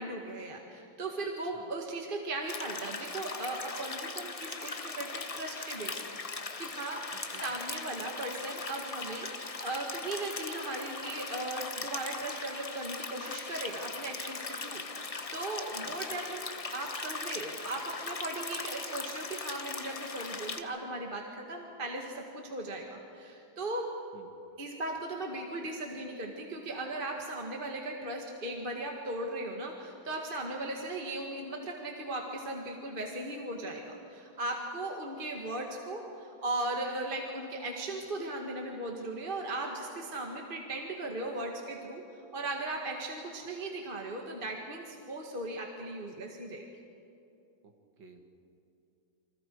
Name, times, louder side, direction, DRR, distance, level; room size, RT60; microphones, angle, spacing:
voice 1, 0.0-6.0 6.6-16.4 16.7-23.9 24.6-42.0 42.3-46.7, right 2 dB, 25° right, 1 dB, 1.9 m, -37 dB
voice 2, 1.4-1.8 7.1-7.6 15.8-16.0 24.1-24.3 48.0-48.2, right 4 dB, 65° right, 4 dB, 2.5 m, -55 dB
sound 1, 2.5-20.6, left 4 dB, 75° left, 0.3 m, -39 dB
29.0 x 25.5 x 4.7 m, 2.6 s
omnidirectional pair, 2.2 m